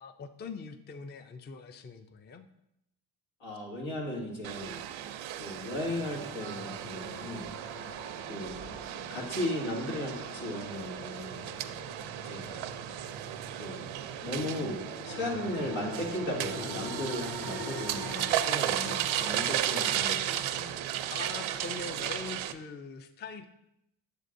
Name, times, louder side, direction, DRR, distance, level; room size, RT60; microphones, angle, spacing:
voice 1, 0.0-2.5 21.1-23.5, left 4 dB, 25° left, 10 dB, 0.4 m, -42 dB
voice 2, 3.4-4.8 5.4-7.5 7.8-7.9 8.3-11.4 12.2-12.7 13.6-20.8, left 1 dB, 90° left, -3 dB, 2.2 m, -36 dB
sound 1, 4.4-22.5, right 11 dB, 90° right, 0.6 m, -35 dB
sound 2, 5.8-20.0, left 2 dB, 65° left, 2.5 m, -45 dB
8.0 x 7.3 x 2.6 m, 0.82 s
cardioid pair, 105°, 45 cm